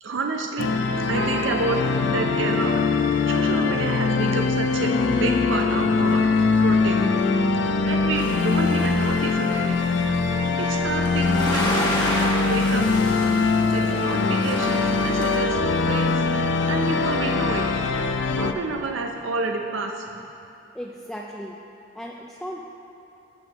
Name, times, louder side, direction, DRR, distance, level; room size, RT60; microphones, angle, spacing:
voice 1, 0.0-2.8 3.2-4.9 5.2-6.2 6.6-7.0 7.8-9.9 10.6-11.9 12.5-12.9 13.7-16.3 16.7-17.7 18.4-20.3, right 3 dB, 90° right, 2 dB, 0.5 m, -29 dB
sound 1, 0.6-18.5, left 4 dB, 75° left, 0.5 m, -22 dB
sound 2, 8.2-15.4, left 1 dB, 25° left, 1.4 m, -32 dB
voice 2, 20.7-21.6 21.9-22.6, equal, ahead, -2 dB, 0.3 m, -36 dB
14.0 x 6.4 x 3.0 m, 2.8 s
head